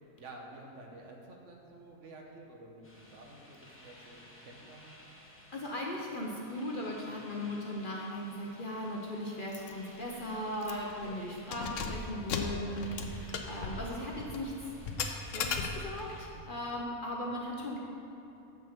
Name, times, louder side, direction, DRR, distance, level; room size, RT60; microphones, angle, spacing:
voice 1, 0.2-5.0 7.1-7.2 11.0-11.2 16.3-16.7 17.3-17.8, right 2 dB, 60° right, 0 dB, 1.2 m, -52 dB
sound 1, 2.8-16.3, left 1 dB, 10° left, 0.9 m, -56 dB
voice 2, 3.7-4.1 5.5-14.5 15.2-17.8, left 1 dB, 45° left, -2 dB, 0.8 m, -38 dB
Keys jangling, 9.5-9.7 10.0-10.1 10.6-11.0 11.4-16.1, left 5 dB, 65° left, 1.0 m, -37 dB
7.2 x 6.2 x 5.9 m, 3.0 s
omnidirectional pair, 1.5 m